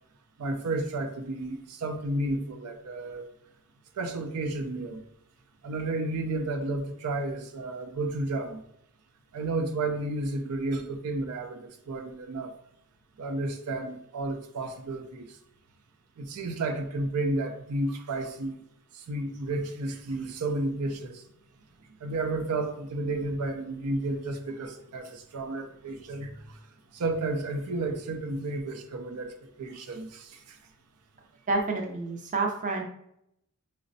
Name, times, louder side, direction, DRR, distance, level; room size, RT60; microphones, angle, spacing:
voice 1, 0.4-3.3 4.0-5.0 5.6-8.6 9.3-12.5 13.2-15.4 16.2-18.6 18.9-21.2 22.0-26.6 26.9-30.6, right 2 dB, 85° right, 0.5 m, -32 dB
voice 2, 31.5-32.8, right 3 dB, 35° right, 0.5 m, -28 dB
4.9 x 2.1 x 2.6 m
head